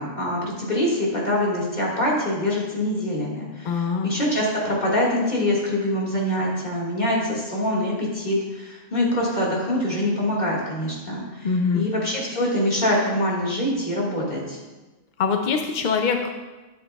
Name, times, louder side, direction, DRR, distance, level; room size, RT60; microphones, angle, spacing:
voice 1, 0.0-14.6, left 1 dB, 35° left, -5 dB, 2.0 m, -24 dB
voice 2, 3.6-4.1 11.4-11.9 15.2-16.3, left 5 dB, 60° left, 5 dB, 0.4 m, -23 dB
12.0 x 6.8 x 2.3 m, 1.2 s
omnidirectional pair, 1.4 m